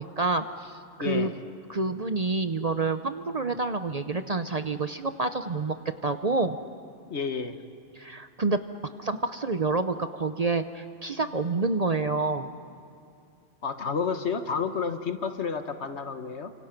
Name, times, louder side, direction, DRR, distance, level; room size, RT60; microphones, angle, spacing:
voice 1, 0.0-1.3 1.7-6.6 7.9-8.6 9.0-12.5, right 3 dB, 40° right, 9 dB, 0.7 m, -28 dB
voice 2, 1.0-1.4 7.1-7.6 13.6-16.5, left 5 dB, 65° left, 8 dB, 1.5 m, -30 dB
29.5 x 26.0 x 5.9 m, 2.5 s
omnidirectional pair, 1.3 m